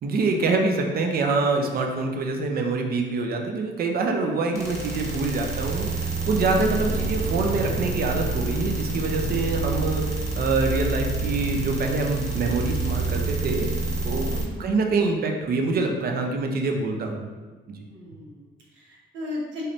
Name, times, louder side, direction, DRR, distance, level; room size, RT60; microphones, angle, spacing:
voice 1, 0.0-13.7 14.0-14.3 14.6-17.3 17.7-17.8, right 3 dB, 50° right, 2 dB, 0.5 m, -25 dB
sound 1, 4.6-14.4, right 3 dB, 15° right, 1.0 m, -28 dB
voice 2, 6.5-6.8 14.2-14.6 16.9-17.5 17.9-19.6, left 1 dB, 70° right, -4 dB, 1.1 m, -38 dB
4.0 x 2.6 x 3.2 m, 1.3 s
cardioid pair, 90°, 20 cm